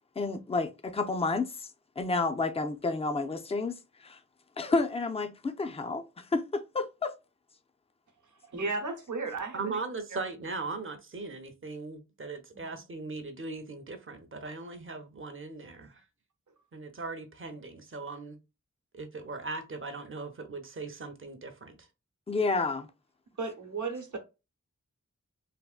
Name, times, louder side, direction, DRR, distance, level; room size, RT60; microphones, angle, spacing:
voice 1, 0.2-1.7 2.0-4.2 4.6-7.1 22.3-22.9, left 3 dB, 20° left, 0.4 m, -30 dB
voice 2, 8.4-9.8 10.1-10.2 12.5-12.8 23.3-24.2, right 3 dB, 70° right, 0.8 m, -35 dB
voice 3, 9.5-16.0 16.7-18.4 18.9-21.9, right 3 dB, 40° right, 0.6 m, -39 dB
3.4 x 2.1 x 2.4 m
wide cardioid pair, 65°, 31 cm